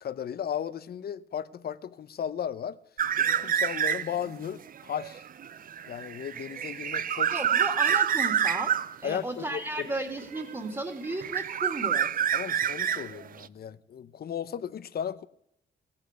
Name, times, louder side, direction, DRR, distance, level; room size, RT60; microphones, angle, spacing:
voice 1, 0.0-2.8 3.2-5.2 5.9-7.3 7.9-8.0 9.0-9.9 12.3-15.3, left 9 dB, 55° left, 0.7 m, -35 dB
sound 1, 3.0-4.3 4.7-8.9 10.0-10.8 11.0-13.5, right 8 dB, 50° right, 0.5 m, -27 dB
voice 2, 7.3-8.7 9.0-12.3, right 1 dB, 20° right, 2.2 m, -34 dB
16.0 x 8.7 x 8.1 m
cardioid pair, 90°, 19 cm